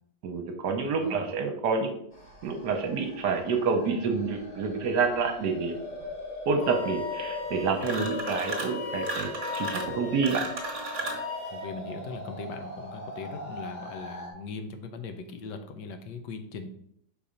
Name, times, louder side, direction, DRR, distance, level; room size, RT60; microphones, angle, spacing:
voice 1, 0.2-2.0 2.4-5.8 6.5-9.3 9.6-10.4, right 4 dB, 70° right, 5 dB, 1.4 m, -28 dB
sound 1, 2.1-14.3, left 2 dB, 30° left, 1.0 m, -40 dB
Wind instrument woodwind instrument, 6.6-11.7, left 5 dB, 50° left, 1.3 m, -39 dB
sound 2, 7.8-8.8 9.0-11.3, right 3 dB, 45° right, 1.4 m, -35 dB
voice 2, 11.5-16.7, left 4 dB, 75° left, 7 dB, 1.3 m, -39 dB
5.6 x 4.2 x 5.0 m, 0.71 s
omnidirectional pair, 2.0 m